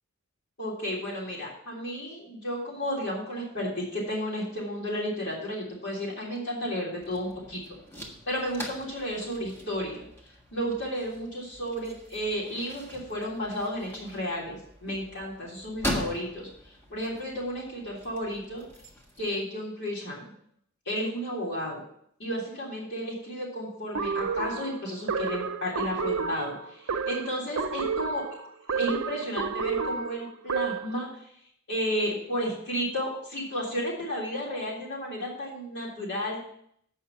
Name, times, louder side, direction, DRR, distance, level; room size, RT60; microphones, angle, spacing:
voice 1, 0.6-7.6 8.2-10.1 10.5-16.5 16.9-18.6 19.2-20.3 20.8-21.8 22.2-28.2 28.7-31.1 31.7-36.5, equal, 55° left, -4 dB, 3.3 m, -32 dB
sound 1, 7.0-19.3, equal, 10° left, 1.6 m, -41 dB
sound 2, 23.9-31.0, right 5 dB, 85° right, 0.7 m, -31 dB
8.1 x 5.7 x 7.1 m, 0.69 s
head